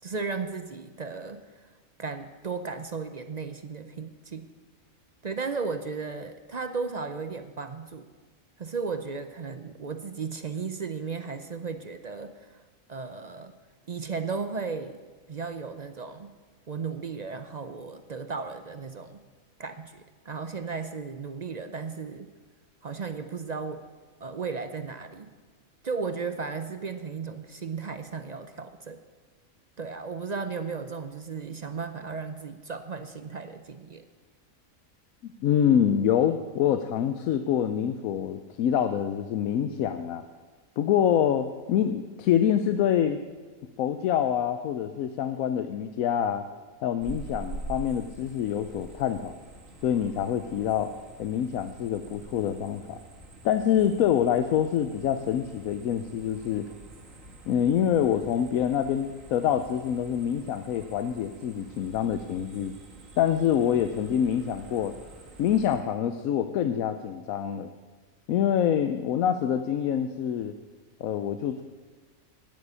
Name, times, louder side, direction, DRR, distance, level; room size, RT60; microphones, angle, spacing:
voice 1, 0.0-4.5 5.2-8.1 8.6-12.6 12.9-13.5 13.9-15.0 15.3-16.3 16.7-19.2 19.6-22.3 22.8-23.9 24.2-25.3 25.8-29.0 29.8-34.0, right 5 dB, 50° right, 9 dB, 0.5 m, -35 dB
voice 2, 35.2-40.3 40.8-43.2 43.8-46.5 46.8-49.3 49.8-50.9 51.2-53.0 53.4-56.7 57.5-62.7 63.2-64.9 65.4-67.7 68.3-70.5 71.0-71.6, left 9 dB, 80° left, 9 dB, 1.1 m, -26 dB
sound 1, 47.0-65.8, right 3 dB, 70° right, 2.0 m, -46 dB
9.5 x 9.1 x 9.6 m, 1.4 s
omnidirectional pair, 1.4 m